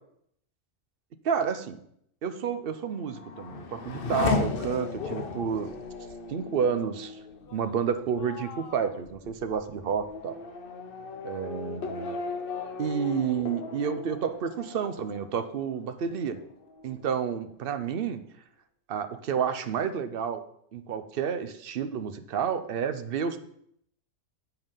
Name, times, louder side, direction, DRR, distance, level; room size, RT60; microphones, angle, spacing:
voice 1, 1.2-1.8 2.2-5.7 6.3-7.2 7.5-10.4 11.2-12.2 12.8-16.4 16.8-18.2 18.9-20.4 20.7-23.4, right 7 dB, 55° right, 10 dB, 0.8 m, -30 dB
Race car auto racing / Accelerating revving vroom, 2.7-16.0 16.4-17.1, left 4 dB, 50° left, 0.9 m, -36 dB
8.0 x 5.4 x 5.5 m, 0.70 s
omnidirectional pair, 1.3 m